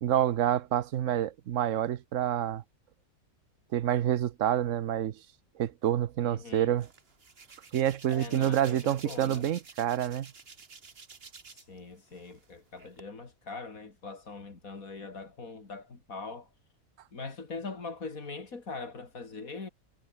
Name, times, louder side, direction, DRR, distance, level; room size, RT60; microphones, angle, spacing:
voice 1, 0.0-2.6 3.7-5.2 5.6-6.9 7.7-10.3, right 11 dB, 70° right, 1.1 m, -28 dB
voice 2, 6.3-6.8 8.1-9.5 11.5-16.5 17.1-19.7, left 4 dB, 85° left, 3.5 m, -42 dB
Hands, 6.8-11.8 12.1-13.0, right 4 dB, 45° right, 1.9 m, -50 dB
omnidirectional pair, 1.4 m